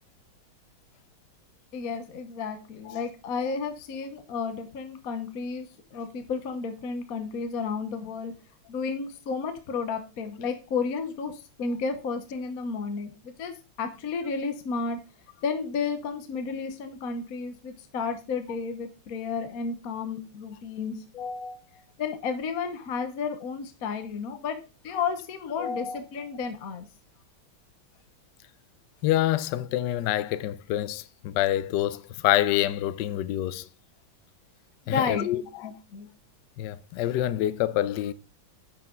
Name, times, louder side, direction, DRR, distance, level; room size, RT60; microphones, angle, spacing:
voice 1, 1.7-8.3 8.7-15.0 15.4-24.6 24.8-26.9 34.9-36.1, left 5 dB, 50° left, 1.3 m, -32 dB
voice 2, 29.0-33.7 34.9-35.7 36.6-38.1, left 13 dB, 75° left, 1.1 m, -26 dB
10.0 x 6.0 x 3.7 m
omnidirectional pair, 2.3 m